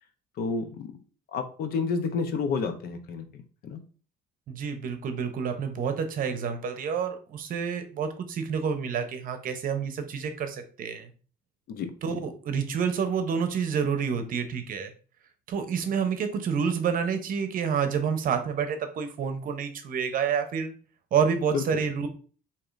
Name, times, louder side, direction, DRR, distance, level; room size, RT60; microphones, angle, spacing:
voice 1, 0.4-1.0 1.3-3.8 11.7-12.2 21.5-21.6, left 5 dB, 65° left, 8 dB, 0.7 m, -30 dB
voice 2, 4.5-11.1 12.0-14.9 15.5-20.8 21.1-22.1, right 6 dB, 55° right, 8 dB, 0.8 m, -28 dB
4.8 x 2.9 x 2.5 m, 0.39 s
cardioid pair, 110°, 17 cm